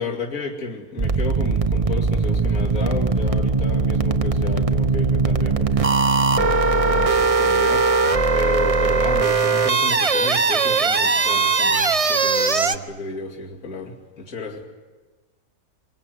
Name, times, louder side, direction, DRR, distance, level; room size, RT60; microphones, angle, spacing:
voice 1, 0.0-14.7, left 3 dB, 60° left, -2 dB, 3.1 m, -32 dB
sound 1, 1.0-12.8, right 4 dB, 30° right, 0.8 m, -20 dB
25.0 x 23.0 x 9.5 m, 1.3 s
omnidirectional pair, 1.6 m